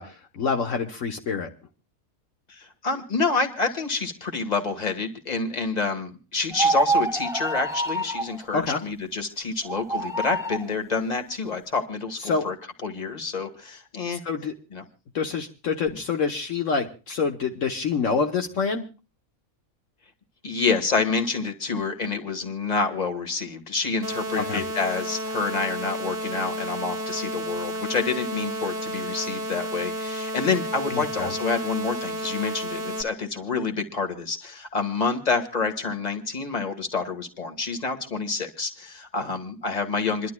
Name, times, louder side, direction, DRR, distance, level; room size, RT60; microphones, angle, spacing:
voice 1, 0.0-1.5 8.5-8.8 12.2-12.4 14.2-14.5 15.1-18.8 24.4-24.6 30.9-31.3, left 5 dB, 65° left, 4 dB, 1.4 m, -27 dB
voice 2, 2.5-12.5 12.8-14.2 14.7-14.8 20.4-40.3, left 4 dB, 30° left, 5 dB, 1.7 m, -28 dB
sound 1, 6.5-8.4 9.7-10.7, right 3 dB, 5° right, 0.6 m, -26 dB
sound 2, 24.0-33.0, equal, 30° right, 1.1 m, -32 dB
28.0 x 11.5 x 2.3 m, 0.33 s
omnidirectional pair, 1.4 m